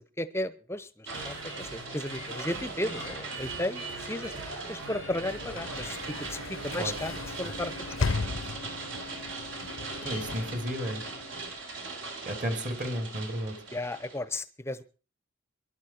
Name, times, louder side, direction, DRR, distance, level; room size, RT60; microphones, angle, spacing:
voice 1, 0.2-4.3 4.7-6.0 6.3-7.9 13.7-14.8, left 1 dB, 10° left, 14 dB, 0.8 m, -34 dB
sound 1, 1.1-14.2, right 3 dB, 65° right, 3.6 m, -41 dB
sound 2, 1.1-7.9, right 2 dB, 90° right, 6.7 m, -41 dB
Sliding door / Slam, 4.6-11.6, left 4 dB, 70° left, 0.7 m, -37 dB
voice 2, 10.0-11.0 12.2-13.6, equal, 40° right, 6 dB, 3.0 m, -33 dB
24.5 x 11.5 x 4.4 m, 0.37 s
head